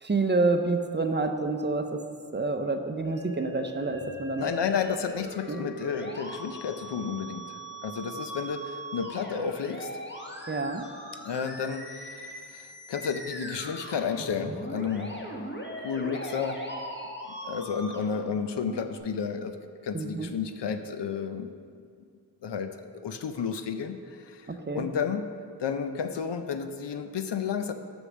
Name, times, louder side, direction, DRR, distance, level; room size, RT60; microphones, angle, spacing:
voice 1, 0.0-2.0 2.3-4.5 5.5-5.6 10.5-10.9 19.9-20.3 24.5-24.9, right 3 dB, 25° right, 7 dB, 0.6 m, -28 dB
Musical instrument, 3.0-19.0, equal, 25° left, 1.3 m, -40 dB
voice 2, 4.4-9.9 11.2-15.3 15.8-16.6 17.4-19.6 19.8-21.5 22.4-22.7 23.0-25.2 25.6-27.7, left 6 dB, 85° left, 8 dB, 0.6 m, -32 dB
6.6 x 6.2 x 6.3 m, 2.2 s
wide cardioid pair, 60°, 41 cm